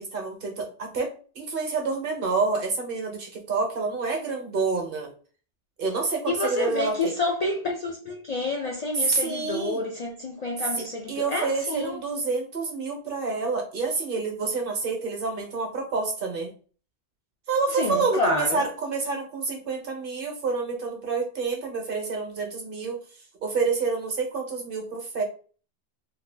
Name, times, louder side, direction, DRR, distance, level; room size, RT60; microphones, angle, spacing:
voice 1, 0.0-5.1 5.8-7.1 8.9-9.8 11.1-16.5 17.5-23.0 23.4-25.2, right 4 dB, 55° right, 0.9 m, -28 dB
voice 2, 6.3-12.0 17.7-18.7, left 2 dB, 50° left, 0.5 m, -29 dB
2.8 x 2.2 x 3.3 m
omnidirectional pair, 1.2 m